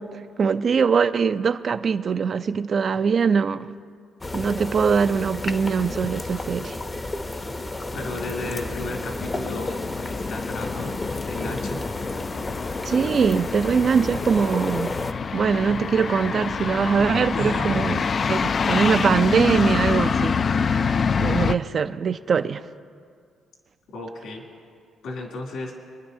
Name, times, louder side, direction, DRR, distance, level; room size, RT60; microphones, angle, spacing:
voice 1, 0.0-3.7 4.3-6.8 12.8-14.9 15.3-18.0 18.3-22.7, right 6 dB, 50° right, 0.5 m, -22 dB
sound 1, 4.2-15.1, left 2 dB, 25° left, 0.7 m, -32 dB
voice 2, 7.9-11.8 17.3-17.8 23.9-24.4 25.0-25.7, left 2 dB, 80° left, 2.8 m, -34 dB
sound 2, 8.4-21.6, left 5 dB, 45° left, 0.3 m, -26 dB
27.0 x 10.5 x 2.8 m
cardioid pair, 90°, 0 cm